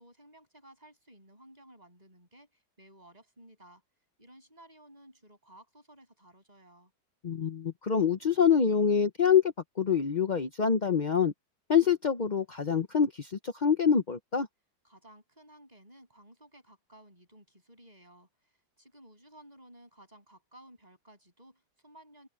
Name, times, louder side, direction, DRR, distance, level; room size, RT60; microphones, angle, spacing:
voice 1, 0.0-3.8 4.2-6.9 14.8-22.3, right 1 dB, 20° right, 8.1 m, -56 dB
voice 2, 7.2-9.4 9.8-11.3 11.7-14.5, left 7 dB, 60° left, 0.4 m, -25 dB
omnidirectional pair, 2.1 m